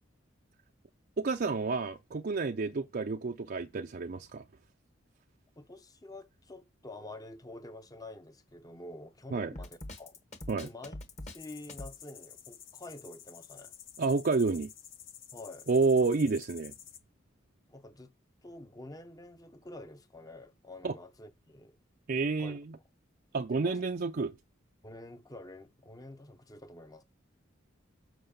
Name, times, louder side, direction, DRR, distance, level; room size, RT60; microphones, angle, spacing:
voice 1, 1.2-4.4 9.3-9.5 10.5-10.7 14.0-14.7 15.7-16.7 20.8-20.9 22.1-22.6 23.3-24.3, right 4 dB, 50° right, 0.5 m, -29 dB
voice 2, 5.6-10.2 10.5-11.0 11.2-13.7 15.3-15.7 17.7-18.1 18.4-21.8 22.2-22.6 23.5-23.8 24.8-27.0, left 2 dB, 20° left, 0.7 m, -48 dB
Drum kit, 9.5-12.0, left 1 dB, 35° left, 1.3 m, -43 dB
sound 1, 11.4-17.0, left 9 dB, 80° left, 1.0 m, -51 dB
7.8 x 4.7 x 6.6 m
head